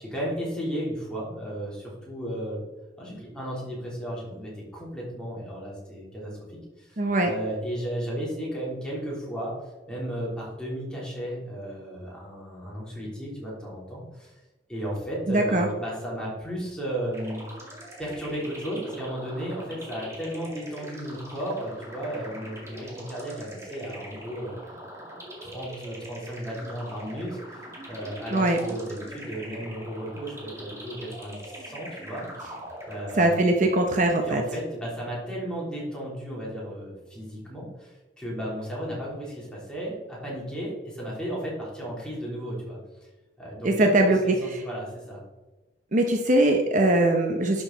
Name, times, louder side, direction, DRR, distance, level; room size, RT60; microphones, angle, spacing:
voice 1, 0.0-2.6 3.0-9.5 9.9-14.4 14.7-17.4 18.0-24.5 25.4-32.5 32.8-33.4 34.2-42.8 43.4-45.2, equal, 5° left, -5 dB, 3.2 m, -34 dB
voice 2, 7.0-7.3 15.3-15.7 28.3-28.6 33.2-34.4 43.6-44.6 45.9-47.6, right 1 dB, 45° right, 3 dB, 0.8 m, -21 dB
sound 1, 17.1-33.5, right 1 dB, 15° right, 2.0 m, -42 dB
11.0 x 6.4 x 3.9 m, 1.2 s
head